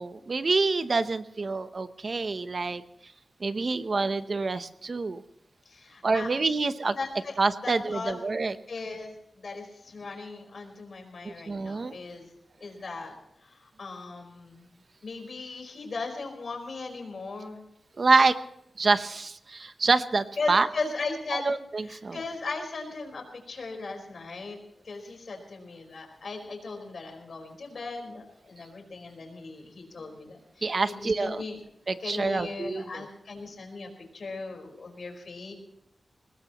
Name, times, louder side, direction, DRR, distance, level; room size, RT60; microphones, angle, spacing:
voice 1, 0.0-2.8 3.4-5.2 6.0-7.0 7.4-8.6 11.2-11.9 18.0-18.4 18.8-20.7 21.3-22.2 30.6-31.4 31.9-33.0, right 3 dB, 45° right, 11 dB, 0.8 m, -26 dB
voice 2, 5.6-6.3 6.9-7.4 7.6-8.1 8.7-12.3 12.6-13.2 13.4-14.7 15.0-17.6 20.4-21.5 21.8-24.6 24.8-31.6 32.0-35.5, left 3 dB, 60° left, 3 dB, 4.6 m, -37 dB
23.5 x 19.5 x 3.0 m, 0.79 s
wide cardioid pair, 130°, 0 cm